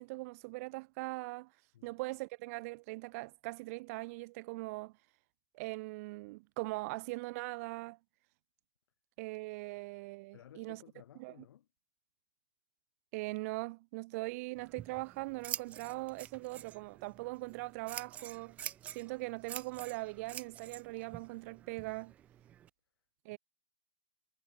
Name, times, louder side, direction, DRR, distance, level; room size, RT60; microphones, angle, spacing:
voice 1, 0.0-1.5 1.8-4.9 5.5-8.0 9.2-10.8 11.2-11.3 13.1-18.6 18.9-22.1 23.2-23.4, right 24 dB, 30° right, 1.0 m, -41 dB
voice 2, 10.3-11.7 15.7-15.8 23.3-23.4, left 11 dB, 50° left, 3.2 m, -57 dB
Scissors, 14.5-22.7, right 11 dB, 10° right, 0.3 m, -47 dB
hypercardioid pair, 150°, 16 cm